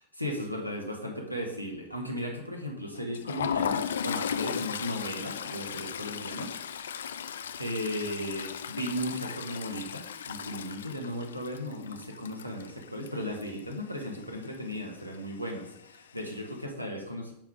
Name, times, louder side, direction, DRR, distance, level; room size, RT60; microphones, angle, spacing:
voice 1, 0.1-6.6 7.6-17.3, equal, 90° right, 2 dB, 1.4 m, -36 dB
Toilet flush, 3.0-13.7 14.0-14.2 14.5-14.7 15.7-16.2, left 8 dB, 65° left, 0.3 m, -36 dB
9.0 x 3.6 x 4.8 m, 0.75 s
figure-of-eight pair, 90°, 0 cm